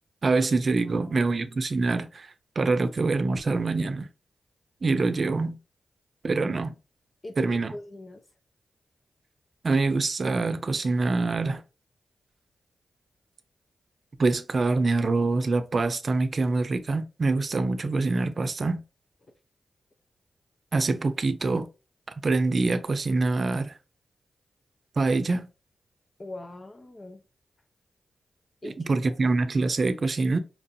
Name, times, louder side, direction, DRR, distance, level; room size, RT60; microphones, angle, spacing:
voice 1, 0.2-4.1 4.8-5.6 6.2-6.8 7.4-7.7 9.6-11.6 14.2-18.8 20.7-21.7 22.2-23.7 25.0-25.5 28.6-30.4, right 3 dB, 55° right, 0.6 m, -25 dB
voice 2, 0.8-1.4 7.2-8.2 26.2-27.2 28.6-28.8 29.0-29.2, left 2 dB, 40° left, 0.7 m, -41 dB
4.5 x 2.6 x 2.7 m
supercardioid pair, 45°, 0 cm